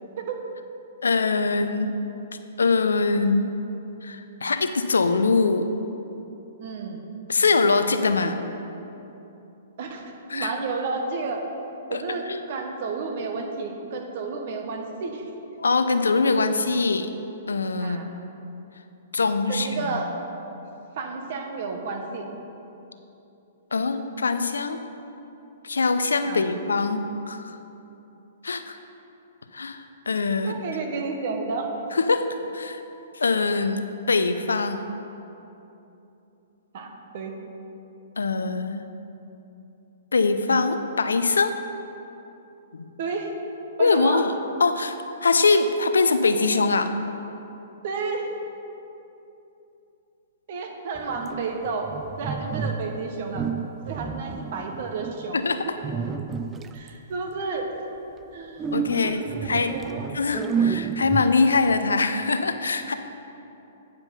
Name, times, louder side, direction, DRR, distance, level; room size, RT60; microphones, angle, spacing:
voice 1, 0.2-0.5 6.6-7.1 8.2-8.4 9.8-10.1 10.3-11.4 11.9-15.3 17.8-18.1 19.5-20.1 21.0-22.3 26.3-26.5 30.4-31.7 36.7-37.4 43.0-43.3 43.8-44.3 47.8-48.4 50.5-51.9 52.2-53.5 53.8-55.7 56.7-57.8 58.3-58.6 58.9-60.1, right 4 dB, 55° right, 3 dB, 1.1 m, -31 dB
voice 2, 1.0-1.9 2.6-3.5 4.0-5.7 7.3-8.3 10.3-10.5 11.9-12.0 12.3-12.4 15.6-17.1 17.5-18.0 19.1-19.9 23.7-24.8 25.6-27.6 28.4-28.8 29.5-30.6 31.9-32.3 32.5-32.8 33.1-34.9 38.2-38.8 40.1-41.6 42.7-42.9 43.8-44.3 44.6-46.9 55.3-55.8 58.7-59.7 60.1-62.9, left 4 dB, 80° left, 9 dB, 0.5 m, -23 dB
sound 1, 51.0-53.0 53.3-55.3 55.8-56.9 58.6-61.6, right 6 dB, 20° right, 0.3 m, -30 dB
9.0 x 5.2 x 5.6 m, 2.9 s
hypercardioid pair, 120°, 0 cm